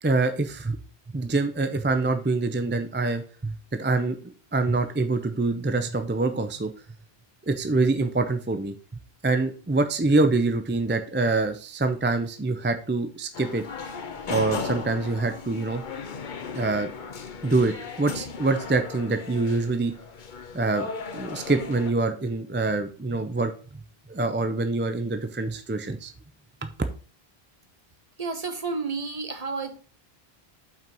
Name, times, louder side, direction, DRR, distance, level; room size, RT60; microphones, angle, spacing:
voice 1, 0.0-0.8 1.1-6.7 7.5-8.7 9.2-13.6 14.3-15.8 16.5-16.9 17.4-19.9 20.5-20.9 21.1-23.5 24.1-26.1 26.6-26.7, right 3 dB, 15° right, 8 dB, 0.4 m, -25 dB
sound 1, 13.3-21.9, left 5 dB, 55° left, 0.9 m, -36 dB
voice 2, 28.2-29.8, right 4 dB, 40° right, 6 dB, 1.1 m, -31 dB
5.8 x 4.5 x 5.3 m, 0.38 s
omnidirectional pair, 1.0 m